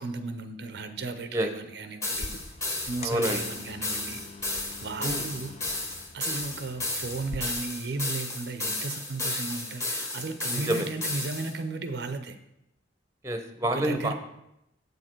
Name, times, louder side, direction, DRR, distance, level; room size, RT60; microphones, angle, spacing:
voice 1, 0.0-2.3 2.9-4.2 4.8-5.5 6.1-12.4 13.7-14.1, right 3 dB, 65° right, 9 dB, 0.6 m, -35 dB
sound 1, 2.0-11.5, left 2 dB, 15° left, 1.2 m, -33 dB
sound 2, 2.1-7.4, left 2 dB, 40° left, 0.5 m, -44 dB
voice 2, 3.0-3.4 5.0-5.2 10.5-10.9 13.2-14.1, right 1 dB, 15° right, 6 dB, 0.7 m, -28 dB
8.0 x 6.6 x 4.5 m, 0.84 s
head